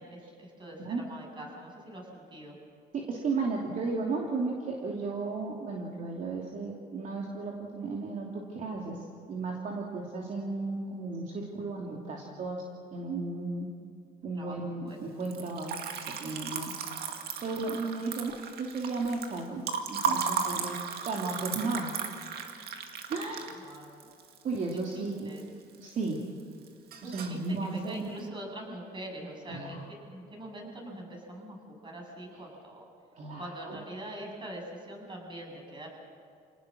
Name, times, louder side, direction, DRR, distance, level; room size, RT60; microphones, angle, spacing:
voice 1, 0.0-2.6 14.3-14.6 14.8-15.2 23.6-24.1 24.9-25.4 27.0-32.9 33.4-35.9, right 1 dB, 30° right, 0 dB, 7.4 m, -43 dB
voice 2, 2.9-12.6 12.9-13.7 14.2-15.8 16.1-17.0 17.4-19.6 19.9-21.9 23.1-23.5 24.4-25.3 25.8-26.2 27.0-28.2 29.5-29.8 33.1-33.8, right 3 dB, 50° right, -1 dB, 2.9 m, -34 dB
Liquid, 15.2-25.4 25.7-26.4 26.7-27.4, right 6 dB, 70° right, 2.2 m, -35 dB
28.0 x 18.5 x 6.4 m, 2.4 s
cardioid pair, 110°, 17 cm